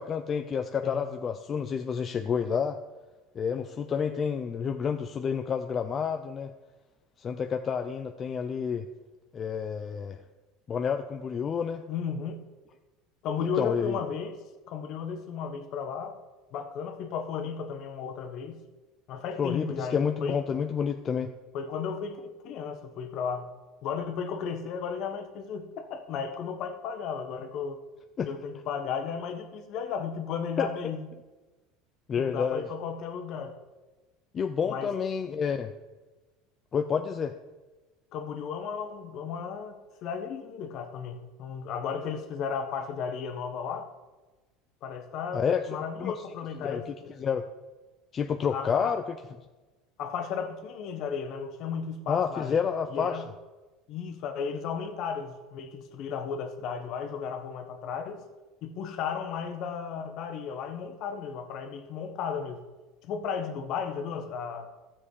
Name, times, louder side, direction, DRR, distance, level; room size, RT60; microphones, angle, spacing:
voice 1, 0.0-2.8 3.3-6.5 7.2-8.9 9.3-10.2 10.7-11.8 13.4-14.0 19.4-21.3 28.2-28.3 30.6-30.7 32.1-32.7 34.3-35.7 36.7-37.4 45.3-45.6 46.0-46.1 46.6-46.8 47.2-47.4 48.1-49.2 52.1-53.2, left 7 dB, 30° left, 6 dB, 0.5 m, -29 dB
voice 2, 11.9-12.4 13.2-14.4 14.7-16.2 16.5-18.6 19.1-20.4 21.5-23.5 23.8-27.8 28.2-31.1 32.1-33.5 34.7-34.9 38.1-43.9 44.8-47.1 48.5-49.0 50.0-52.6 52.9-53.3 53.9-58.2 58.6-62.6 63.0-64.7, left 6 dB, 55° left, 7 dB, 1.3 m, -34 dB
13.0 x 7.3 x 5.0 m, 1.2 s
supercardioid pair, 115°, 0 cm